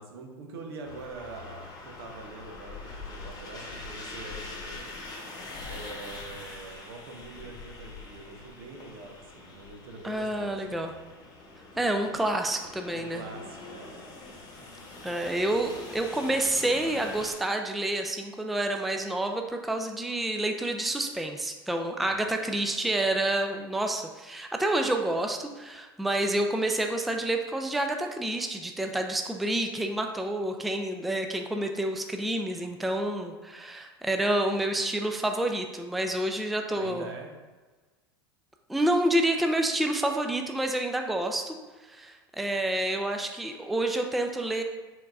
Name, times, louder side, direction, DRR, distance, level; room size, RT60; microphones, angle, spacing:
voice 1, 0.0-5.0 5.6-10.8 12.9-14.0 22.0-22.5 32.6-32.9 36.7-37.3, right 3 dB, 70° right, 2 dB, 0.8 m, -44 dB
sound 1, 0.8-17.3, left 3 dB, 30° left, 1.0 m, -43 dB
voice 2, 10.0-10.9 11.8-13.2 15.0-37.1 38.7-41.6 41.9-44.6, right 1 dB, ahead, 4 dB, 0.3 m, -28 dB
4.4 x 4.0 x 2.4 m, 1.3 s
hypercardioid pair, 90°, 13 cm